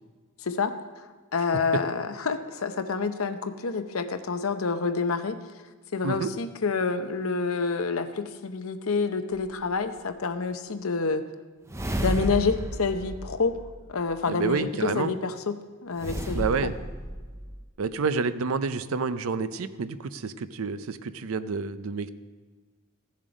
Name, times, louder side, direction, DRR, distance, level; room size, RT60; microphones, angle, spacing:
voice 1, 0.4-0.7 1.3-5.4 5.9-11.2 12.0-13.6 13.9-16.7, left 4 dB, 70° left, 9 dB, 0.7 m, -28 dB
sound 1, 9.3-9.4 11.7-14.1 16.0-17.6, right 1 dB, 15° right, 0.6 m, -33 dB
voice 2, 14.3-15.1 16.3-16.8 17.8-22.1, right 4 dB, 70° right, 13 dB, 0.5 m, -29 dB
15.0 x 7.4 x 5.1 m, 1.3 s
head